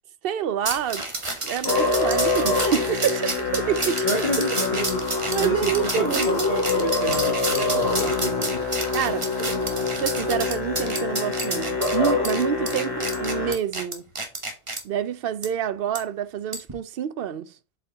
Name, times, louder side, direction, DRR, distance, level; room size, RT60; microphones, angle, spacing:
voice 1, 0.2-1.0 1.4-4.3 5.3-6.3 8.9-9.6 10.0-14.0 14.8-17.5, right 9 dB, 65° right, 0.7 m, -27 dB
sound 1, 0.6-14.8 15.4-15.5 15.9-16.0 16.5-16.7, right 2 dB, 30° right, 1.3 m, -30 dB
Musical instrument, 1.6-13.5, left 3 dB, 65° left, 2.0 m, -26 dB
voice 2, 4.0-5.0 5.4-8.6, equal, 45° left, 1.6 m, -30 dB
7.7 x 4.5 x 3.4 m
omnidirectional pair, 1.1 m